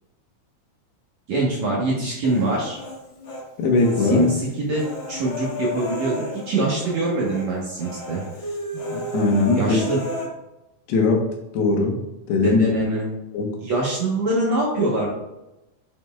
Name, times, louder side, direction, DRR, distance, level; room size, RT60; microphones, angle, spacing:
voice 1, 1.3-2.8 4.0-8.2 9.6-10.0 12.4-13.1 13.6-15.1, right 2 dB, 60° right, -4 dB, 1.9 m, -23 dB
Human voice, 2.2-3.4 3.8-7.0 7.2-7.5 7.8-10.2, left 1 dB, 50° left, 1.4 m, -33 dB
voice 2, 3.6-4.3 8.9-9.8 10.9-11.2 11.5-11.9 12.3-12.6 13.3-13.5, left 3 dB, 80° left, 1 dB, 3.3 m, -20 dB
7.8 x 7.5 x 2.4 m, 0.92 s
omnidirectional pair, 4.6 m